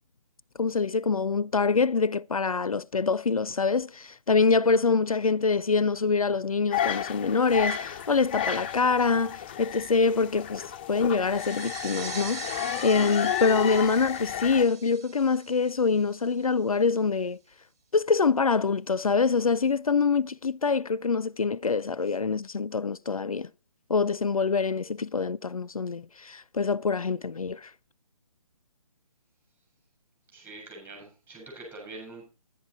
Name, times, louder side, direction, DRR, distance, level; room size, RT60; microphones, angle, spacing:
voice 1, 0.6-10.6 10.9-12.5 12.8-17.4 17.9-23.5 23.9-27.7, left 4 dB, 75° left, 0.5 m, -25 dB
sound 1, 6.7-14.6, left 9 dB, 15° left, 0.5 m, -32 dB
sound 2, 11.3-16.6, right 6 dB, 30° right, 1.7 m, -43 dB
voice 2, 30.3-32.3, right 2 dB, 10° right, 7.3 m, -44 dB
11.0 x 10.0 x 4.5 m
figure-of-eight pair, 140°, 18 cm